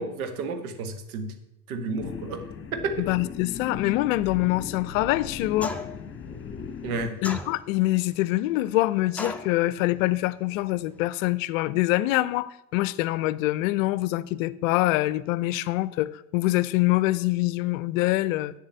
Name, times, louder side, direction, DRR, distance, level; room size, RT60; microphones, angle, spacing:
voice 1, 0.0-1.3 1.7-3.0 6.8-7.2, right 4 dB, 70° right, 1.5 m, -32 dB
sound 1, 2.0-7.1, left 7 dB, 30° left, 1.5 m, -37 dB
voice 2, 3.0-5.8 7.2-18.5, left 17 dB, 60° left, 0.6 m, -25 dB
sound 2, 5.6-6.1 7.2-7.9 9.2-9.6, left 2 dB, 5° left, 0.8 m, -34 dB
7.5 x 7.3 x 7.8 m
hypercardioid pair, 75°, 44 cm